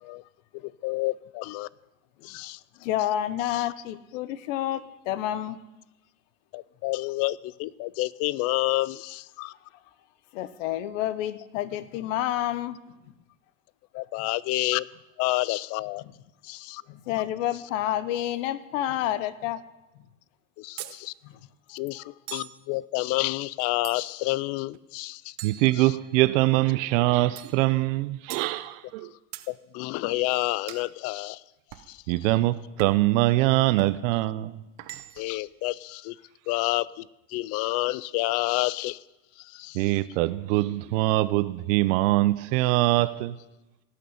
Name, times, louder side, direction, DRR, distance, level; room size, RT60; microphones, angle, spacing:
voice 1, 0.6-1.7 2.2-2.6 3.5-3.6 6.5-9.5 13.9-14.9 15.2-16.0 16.4-16.8 20.6-21.1 21.7-22.0 22.3-25.3 29.5-31.4 31.9-32.0 35.2-36.1 36.5-37.1 37.3-39.0 39.5-39.8, left 20 dB, 40° left, 0.4 m, -29 dB
voice 2, 2.8-5.6 10.3-12.8 14.2-14.3 16.9-19.6 21.2-21.3, left 12 dB, 75° left, 1.0 m, -29 dB
sound 1, 20.8-21.0 22.3-22.6 23.8-24.3 25.4-26.3 27.4-27.6 28.3-28.5 29.3-29.5 30.7-30.9 31.7-31.9 32.8-33.1 33.8-34.0 34.8-35.4, right 16 dB, 45° right, 0.9 m, -42 dB
voice 3, 25.4-29.1 32.1-34.6 39.7-43.4, right 18 dB, 75° right, 0.7 m, -23 dB
17.5 x 6.7 x 9.3 m
supercardioid pair, 145°, 39 cm